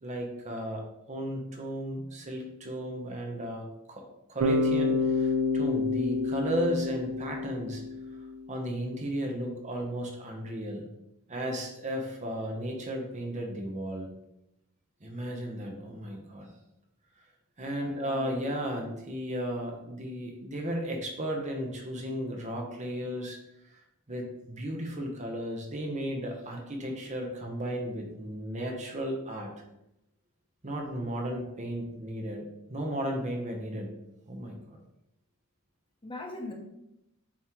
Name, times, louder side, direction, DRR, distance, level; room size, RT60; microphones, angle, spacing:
voice 1, 0.0-0.8 1.1-4.0 4.3-7.8 8.5-10.9 11.3-14.1 15.0-16.5 17.6-23.4 24.1-29.5 30.6-33.9 34.3-34.6, equal, 30° right, 1 dB, 1.0 m, -34 dB
Bass guitar, 4.4-8.5, left 3 dB, 85° right, 0.6 m, -28 dB
voice 2, 17.6-18.3 36.0-36.5, left 2 dB, 25° left, 0 dB, 1.1 m, -41 dB
7.3 x 3.2 x 4.5 m, 0.85 s
head